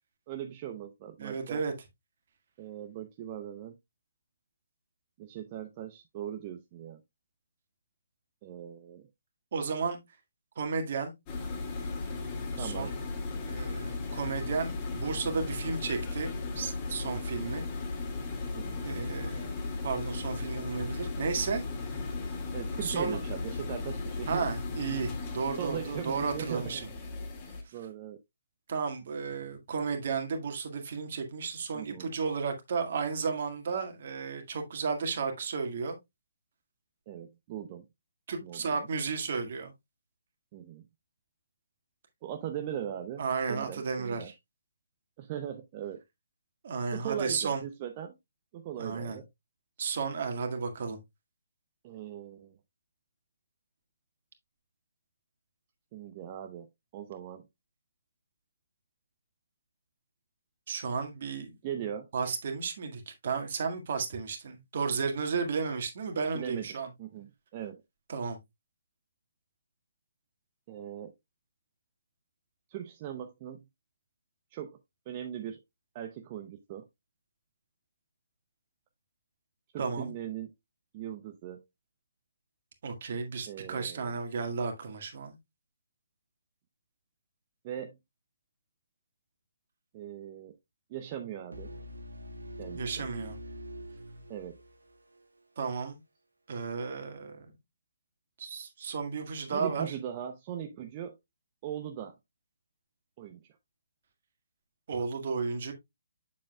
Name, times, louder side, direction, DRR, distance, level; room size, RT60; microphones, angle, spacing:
voice 1, 0.3-1.6 2.6-3.8 5.2-7.0 8.4-9.1 12.6-12.9 18.5-18.9 22.5-24.5 25.6-26.8 27.7-28.2 31.7-32.1 37.1-37.8 38.4-38.9 40.5-40.8 42.2-44.3 45.2-46.0 46.9-48.2 48.5-49.2 51.8-52.6 55.9-56.7 56.9-57.5 61.6-62.1 66.3-67.8 70.7-71.1 72.7-73.6 74.5-74.8 75.1-75.6 75.9-76.8 79.7-80.5 80.9-81.6 83.5-84.2 87.6-88.0 89.9-90.6 90.9-91.7 92.6-93.1 94.3-94.6 99.5-101.2 101.6-102.2 103.2-103.4, right 10 dB, 30° right, 0.7 m, -39 dB
voice 2, 1.2-1.7 9.5-10.0 10.5-11.1 12.6-12.9 13.4-17.6 18.8-19.5 19.8-21.6 22.8-23.2 24.3-26.9 28.7-36.0 38.3-39.7 43.2-44.3 46.6-47.6 48.8-49.2 49.8-51.0 60.7-61.5 62.1-66.9 68.1-68.4 79.8-80.1 82.8-85.3 92.7-93.4 95.6-96.0 96.5-97.4 98.4-99.9 104.9-105.7, right 5 dB, 50° right, 1.8 m, -33 dB
sound 1, 11.3-27.6, left 3 dB, 25° left, 2.0 m, -36 dB
sound 2, 91.5-95.4, equal, 85° right, 1.6 m, -44 dB
7.3 x 7.2 x 2.3 m
figure-of-eight pair, 140°, 0 cm